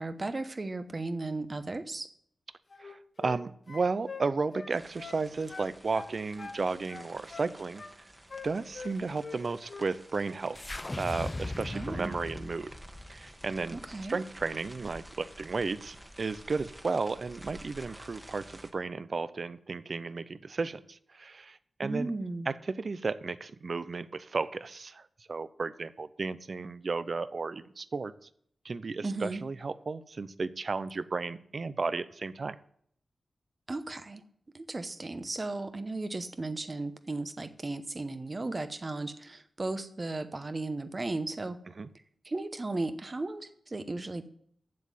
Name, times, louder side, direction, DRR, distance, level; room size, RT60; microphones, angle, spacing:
voice 1, 0.0-2.1 11.7-12.2 13.7-14.2 21.8-22.5 29.0-29.4 33.7-34.2 34.5-41.6 42.2-44.3, right 2 dB, 35° right, 10 dB, 0.9 m, -35 dB
sound 1, 2.7-3.4 3.7-5.2 5.5-6.6 6.9-7.9 8.3-9.4 9.7-9.9, left 4 dB, 50° left, 1.0 m, -44 dB
voice 2, 2.8-7.8 8.4-12.7 13.1-13.8 14.1-22.1 22.5-28.1 28.6-32.6 41.8-41.9, right 4 dB, 55° right, 15 dB, 0.5 m, -34 dB
sound 2, 4.7-18.7, right 1 dB, 15° right, 1.4 m, -52 dB
sound 3, 10.5-14.9, left 2 dB, 25° left, 0.3 m, -39 dB
7.6 x 7.4 x 7.5 m, 0.65 s
wide cardioid pair, 75°, 0 cm